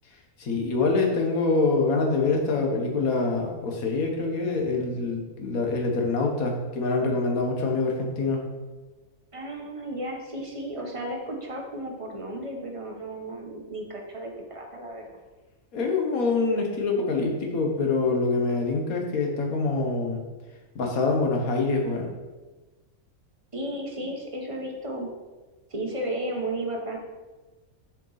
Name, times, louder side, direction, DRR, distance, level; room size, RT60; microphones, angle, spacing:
voice 1, 0.4-8.4 15.7-20.3 20.7-22.1, left 3 dB, 75° left, 1 dB, 1.6 m, -25 dB
voice 2, 9.3-15.2 23.5-25.1 25.7-27.0, right 1 dB, 25° right, 1 dB, 1.0 m, -34 dB
7.0 x 5.3 x 4.0 m, 1.2 s
omnidirectional pair, 1.5 m